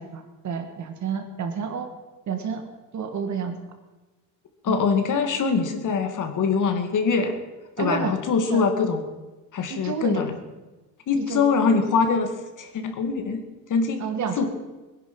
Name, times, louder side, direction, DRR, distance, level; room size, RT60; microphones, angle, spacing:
voice 1, 0.0-1.9 2.3-2.6 2.9-3.5 4.7-4.8 7.8-8.1 8.5-8.7 9.7-10.3 11.1-11.4 14.0-14.5, right 6 dB, 50° right, 6 dB, 1.9 m, -29 dB
voice 2, 4.6-7.4 7.8-9.0 9.5-10.3 11.1-12.3 12.6-13.4 13.7-14.0 14.4-14.5, left 5 dB, 55° left, 6 dB, 2.3 m, -23 dB
22.5 x 10.5 x 5.5 m, 1.2 s
cardioid pair, 145°, 37 cm